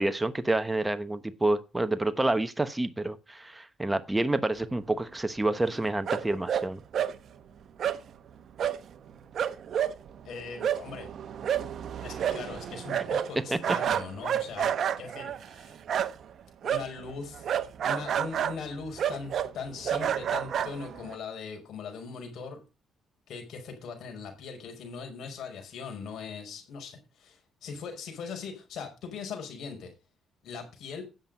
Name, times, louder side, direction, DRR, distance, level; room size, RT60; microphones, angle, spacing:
voice 1, 0.0-6.8 13.5-13.6, right 2 dB, 10° right, 1.0 m, -28 dB
sound 1, 6.1-6.7 6.9-7.2 7.8-8.0 8.6-8.8 9.1-9.2 9.3-16.3 16.6-21.1, right 9 dB, 60° right, 1.0 m, -30 dB
voice 2, 10.2-11.1 12.0-15.8 16.6-17.5 17.8-22.6 23.3-29.9 30.4-31.0, left 5 dB, 75° left, 5.2 m, -40 dB
10.5 x 7.5 x 5.2 m
cardioid pair, 90°, 0 cm